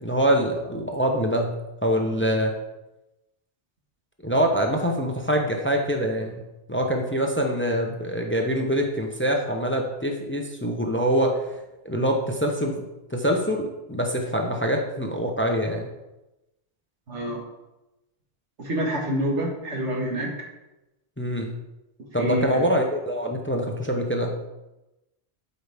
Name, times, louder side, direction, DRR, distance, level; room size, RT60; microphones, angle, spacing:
voice 1, 0.0-1.5 1.8-2.5 4.2-6.4 6.7-11.6 11.8-12.8 13.1-15.9 21.2-21.5 22.1-24.4, equal, 10° left, 2 dB, 0.8 m, -24 dB
voice 2, 17.1-17.4 18.6-20.4 22.2-22.7, right 1 dB, 90° right, -1 dB, 2.0 m, -27 dB
12.5 x 5.4 x 3.5 m, 0.98 s
omnidirectional pair, 1.2 m